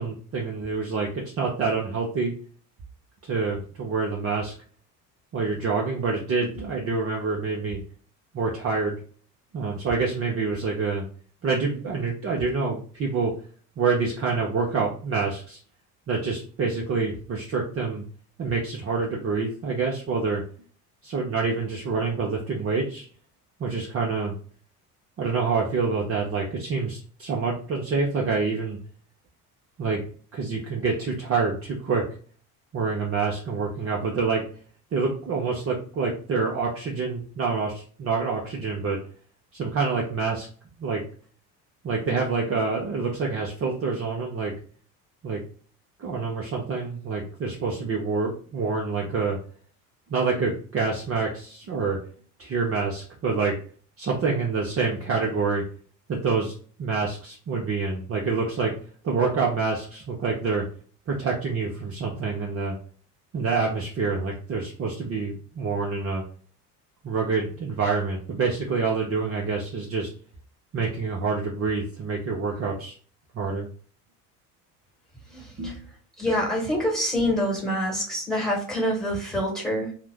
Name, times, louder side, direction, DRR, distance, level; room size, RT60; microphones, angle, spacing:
voice 1, 0.0-2.3 3.2-4.5 5.3-7.8 8.3-9.0 9.5-11.1 11.4-13.3 13.8-15.6 16.1-18.0 18.4-20.4 21.0-23.1 23.6-24.3 25.2-28.8 29.8-30.0 30.3-32.1 32.7-34.5 34.9-39.0 39.5-40.5 40.8-41.0 41.8-44.5 45.2-45.4 46.0-49.4 50.1-52.0 52.4-53.6 54.0-55.6 56.1-56.5 56.8-58.7 59.0-60.6 61.1-62.8 63.3-66.2 67.0-70.1 70.7-72.9 73.3-73.7 75.6-75.8, right 4 dB, 30° right, -2 dB, 0.7 m, -27 dB
voice 2, 75.3-75.7 76.2-79.9, equal, ahead, -1 dB, 1.4 m, -26 dB
2.8 x 2.1 x 3.4 m, 0.43 s
figure-of-eight pair, 60°, 46 cm